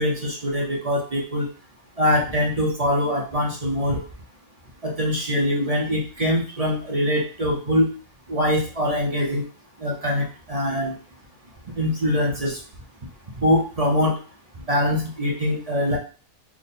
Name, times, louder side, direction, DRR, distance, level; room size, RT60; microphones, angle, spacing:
voice 1, 0.0-1.5 2.0-4.0 4.8-7.9 8.3-9.4 9.8-11.0 11.8-12.6 13.4-14.1 14.7-16.0, left 1 dB, 40° right, -1 dB, 0.5 m, -23 dB
3.5 x 2.0 x 4.1 m, 0.37 s
omnidirectional pair, 1.4 m